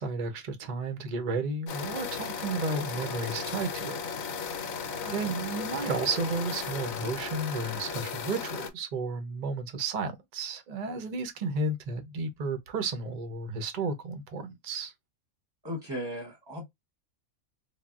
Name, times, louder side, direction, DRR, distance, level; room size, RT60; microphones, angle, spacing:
voice 1, 0.0-4.0 4.8-14.9, right 3 dB, 60° right, 0.4 m, -33 dB
sound 1, 1.7-8.7, left 6 dB, 80° left, 1.0 m, -36 dB
voice 2, 4.9-5.4 15.6-16.6, equal, 25° right, 0.7 m, -37 dB
3.5 x 2.0 x 2.2 m
omnidirectional pair, 1.4 m